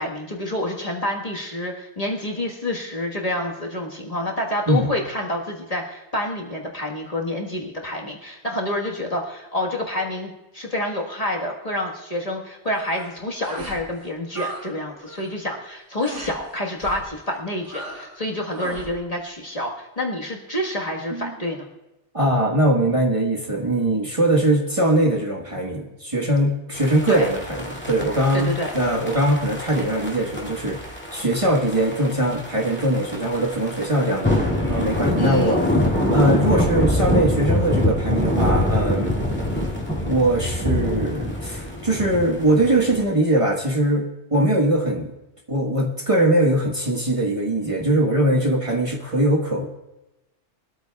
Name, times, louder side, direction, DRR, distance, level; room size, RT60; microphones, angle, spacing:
voice 1, 0.0-21.7 27.1-27.3 28.3-28.7 35.2-35.7, left 1 dB, 35° left, -1 dB, 1.6 m, -28 dB
sound 1, 12.7-13.1 13.4-13.8 14.1-14.7 14.9-15.3 16.0-16.4 16.8-17.1 17.6-18.2 18.5-18.9, right 2 dB, 90° right, 2.5 m, -36 dB
voice 2, 22.1-39.2 40.0-45.1 45.5-49.7, right 1 dB, 30° right, -1 dB, 1.4 m, -21 dB
sound 2, 26.7-43.0, left 1 dB, 10° left, 2.2 m, -25 dB
23.0 x 13.0 x 2.3 m, 0.99 s
omnidirectional pair, 1.2 m